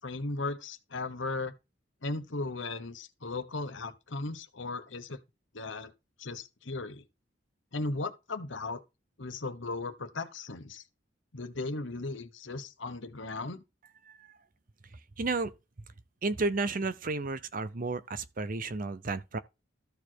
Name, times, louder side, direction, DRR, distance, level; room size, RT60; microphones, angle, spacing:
voice 1, 0.0-1.5 2.0-5.2 5.5-5.9 6.2-7.0 7.7-8.8 9.2-10.8 11.3-13.6, left 3 dB, 85° left, 1.2 m, -36 dB
voice 2, 15.2-15.5 16.2-19.4, right 3 dB, 45° right, 0.7 m, -32 dB
13.5 x 4.6 x 4.6 m
head